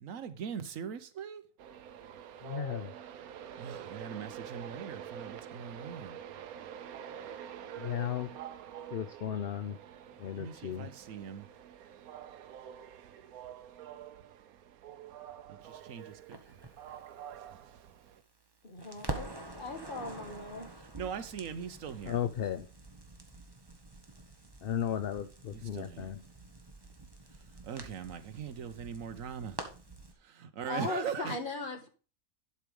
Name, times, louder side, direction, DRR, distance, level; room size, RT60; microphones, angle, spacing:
voice 1, 0.0-1.4 3.6-6.2 10.3-11.5 15.5-16.4 21.0-22.2 25.5-26.1 27.6-29.6 30.2-31.4, right 7 dB, 70° right, 1.3 m, -41 dB
Train, 1.6-18.2, right 9 dB, 90° right, 1.2 m, -47 dB
voice 2, 2.4-2.9 7.8-8.3 8.9-9.8 10.2-10.9 22.1-22.7 24.6-26.2, left 9 dB, 55° left, 0.7 m, -35 dB
Crackle, 16.3-18.5 18.8-30.1, right 2 dB, 20° right, 1.2 m, -46 dB
voice 3, 18.6-19.3 19.5-20.7 30.6-31.9, left 2 dB, 35° left, 1.7 m, -38 dB
11.5 x 4.8 x 5.3 m
omnidirectional pair, 1.5 m